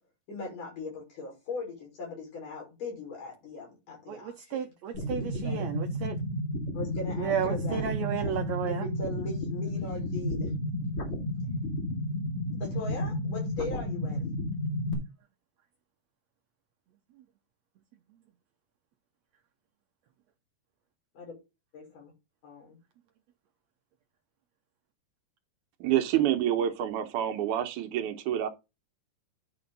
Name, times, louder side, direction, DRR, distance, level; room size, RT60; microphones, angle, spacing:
voice 1, 0.3-4.6 5.4-5.7 6.7-8.1 8.6-10.5 12.6-14.3 21.2-21.3 21.7-22.1 22.4-22.8, left 3 dB, 65° left, 6.8 m, -39 dB
voice 2, 4.1-6.2 7.2-8.9, right 8 dB, 90° right, 1.5 m, -33 dB
sound 1, 4.9-14.9, left 1 dB, 35° left, 3.1 m, -32 dB
voice 3, 25.8-28.5, right 11 dB, 70° right, 2.2 m, -27 dB
11.0 x 5.7 x 4.0 m
omnidirectional pair, 4.0 m